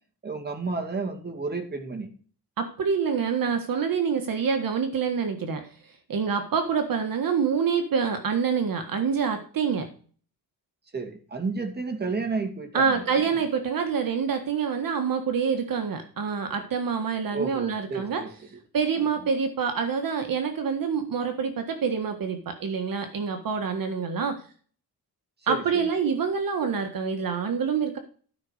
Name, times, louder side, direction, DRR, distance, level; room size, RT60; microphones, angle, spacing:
voice 1, 0.2-2.1 10.9-13.4 17.3-18.6 25.5-25.9, right 4 dB, 25° right, 5 dB, 2.2 m, -32 dB
voice 2, 2.6-5.7 6.1-9.9 12.7-18.2 18.7-24.4 25.5-28.0, right 6 dB, 60° right, 6 dB, 1.6 m, -26 dB
13.5 x 5.1 x 6.5 m, 0.42 s
wide cardioid pair, 175°, 38 cm